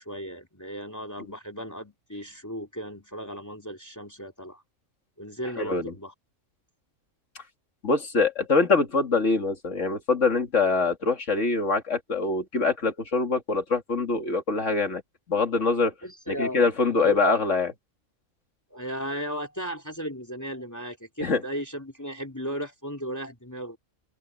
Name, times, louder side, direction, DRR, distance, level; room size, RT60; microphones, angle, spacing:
voice 1, 0.0-4.6 5.2-6.1 16.0-17.2 18.7-23.8, equal, 10° left, 3.0 m, -36 dB
voice 2, 5.6-5.9 7.8-15.0 15.3-15.9 16.3-17.7 21.2-21.4, left 4 dB, 60° left, 2.7 m, -24 dB
open air
omnidirectional pair, 1.4 m